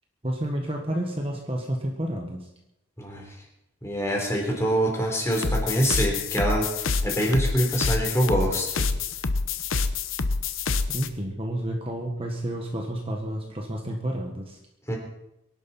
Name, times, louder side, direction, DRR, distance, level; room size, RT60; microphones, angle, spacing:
voice 1, 0.2-2.5 10.9-14.6, right 1 dB, 30° right, 1 dB, 1.5 m, -30 dB
voice 2, 3.8-8.9 14.9-15.0, right 1 dB, 15° left, 0 dB, 3.6 m, -25 dB
sound 1, 5.3-11.1, left 4 dB, 80° left, 0.9 m, -27 dB
24.0 x 11.5 x 4.4 m, 0.85 s
head